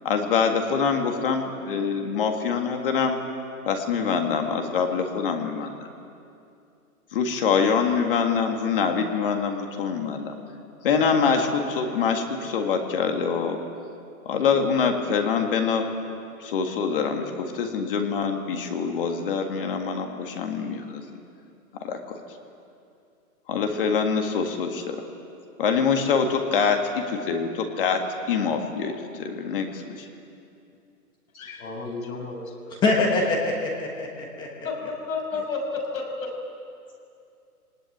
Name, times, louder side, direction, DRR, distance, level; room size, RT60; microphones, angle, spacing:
voice 1, 0.0-3.2 3.7-5.8 7.1-10.4 10.8-13.6 14.3-15.9 16.4-21.0 21.8-22.2 23.5-25.0 25.6-28.0 28.3-30.1, left 6 dB, 35° left, 4 dB, 1.9 m, -25 dB
voice 2, 31.3-32.8 34.6-36.3, left 3 dB, 65° left, 1 dB, 6.5 m, -32 dB
voice 3, 32.8-34.5, left 2 dB, 10° left, 0 dB, 1.2 m, -24 dB
23.0 x 19.0 x 9.2 m, 2.5 s
hypercardioid pair, 165°, 45 cm